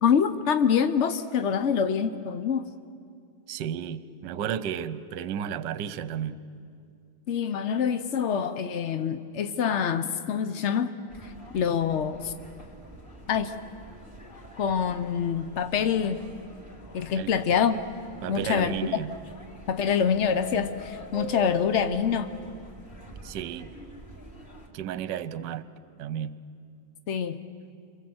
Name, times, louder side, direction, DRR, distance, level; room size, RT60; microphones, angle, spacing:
voice 1, 0.0-2.7 7.3-10.9 11.2-12.3 13.3-13.5 14.6-16.2 16.9-17.8 18.3-18.7 19.7-22.3 27.1-27.4, left 7 dB, 70° left, 9 dB, 0.6 m, -25 dB
voice 2, 3.5-6.4 17.2-17.3 18.2-19.1 23.2-23.7 24.7-25.7 26.0-26.3, right 9 dB, 65° right, 14 dB, 1.4 m, -33 dB
sound 1, 11.1-24.7, equal, 25° left, 3.8 m, -43 dB
27.0 x 25.5 x 7.9 m, 2.4 s
omnidirectional pair, 2.3 m